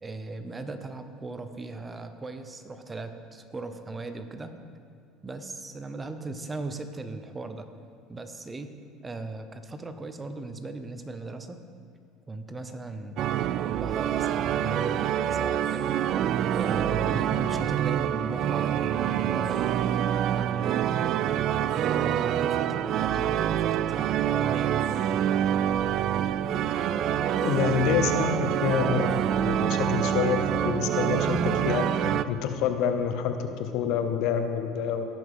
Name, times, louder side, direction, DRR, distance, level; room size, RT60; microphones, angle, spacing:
voice 1, 0.0-4.6 5.2-7.7 8.1-8.8 9.0-11.6 12.3-16.1 16.5-19.9 20.4-21.2 21.7-24.9, right 3 dB, 20° right, 9 dB, 0.8 m, -38 dB
sound 1, 13.2-32.2, right 10 dB, 55° right, 0.3 m, -26 dB
voice 2, 27.4-35.0, left 7 dB, 65° left, 7 dB, 0.8 m, -27 dB
17.0 x 5.9 x 3.7 m, 2.3 s
supercardioid pair, 85°, 0 cm